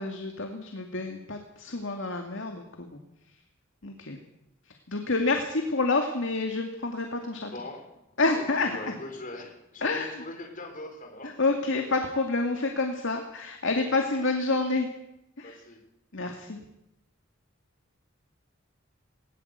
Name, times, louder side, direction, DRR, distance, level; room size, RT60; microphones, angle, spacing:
voice 1, 0.0-3.0 3.8-4.2 4.9-7.5 8.2-8.9 9.8-10.1 11.2-14.9 15.4-15.6 16.1-16.6, left 3 dB, 65° left, 4 dB, 2.3 m, -28 dB
voice 2, 7.4-8.0 8.3-11.4 13.9-14.3 15.4-15.8, left 2 dB, 40° left, 5 dB, 3.9 m, -41 dB
19.5 x 18.5 x 8.2 m, 0.86 s
head